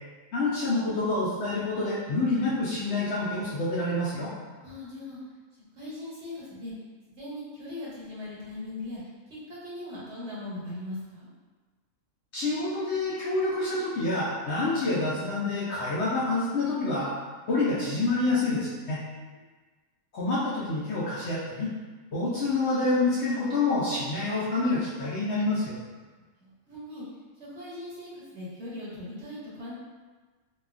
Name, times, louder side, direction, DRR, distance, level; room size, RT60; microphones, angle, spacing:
voice 1, 0.3-4.3 12.3-17.1 17.5-19.0 20.1-21.7 22.1-25.7, left 2 dB, 60° left, -8 dB, 0.7 m, -27 dB
voice 2, 4.5-5.2 5.8-6.7 7.1-9.0 9.3-11.3 19.1-19.4 26.4-27.0 27.4-29.7, left 1 dB, 55° right, -8 dB, 0.9 m, -40 dB
3.1 x 2.2 x 2.4 m, 1.3 s
omnidirectional pair, 1.5 m